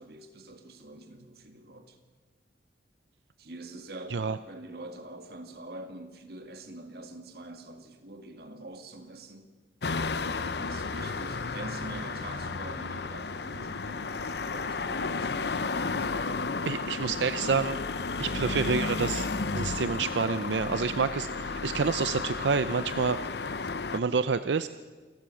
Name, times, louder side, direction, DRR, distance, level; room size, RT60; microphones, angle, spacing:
voice 1, 0.0-2.0 3.4-9.5 10.3-17.3 18.2-18.6, right 2 dB, 60° right, 7 dB, 2.1 m, -45 dB
sound 1, 9.8-24.0, left 4 dB, 70° left, 0.8 m, -33 dB
voice 2, 16.7-17.8 18.2-19.3 19.5-23.2 23.9-24.7, right 5 dB, 90° right, 12 dB, 0.6 m, -28 dB
28.0 x 12.5 x 7.2 m, 1.4 s
head